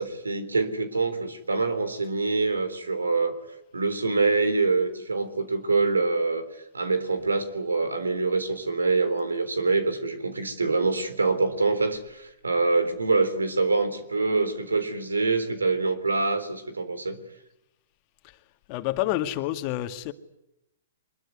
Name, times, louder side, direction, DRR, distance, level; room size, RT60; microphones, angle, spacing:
voice 1, 0.0-3.3 3.7-17.2, right 3 dB, 85° right, 3.6 m, -25 dB
voice 2, 18.7-20.1, left 14 dB, 40° left, 2.0 m, -28 dB
24.5 x 21.5 x 9.6 m
figure-of-eight pair, 115°, 0 cm